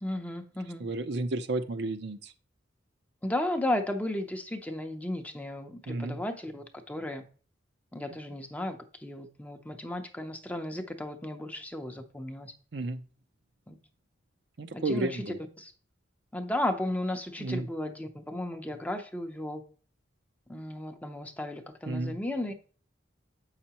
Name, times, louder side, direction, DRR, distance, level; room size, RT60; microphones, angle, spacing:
voice 1, 0.0-0.9 3.2-7.2 7.9-12.5 13.7-13.8 14.7-15.2 15.6-15.7 16.3-19.6 20.5-22.6, left 1 dB, 10° left, 0.6 m, -34 dB
voice 2, 0.8-2.3 5.9-6.2 12.7-13.0 14.6-15.4 17.4-17.7 21.9-22.2, right 2 dB, 65° right, 0.6 m, -32 dB
7.6 x 5.7 x 2.9 m
head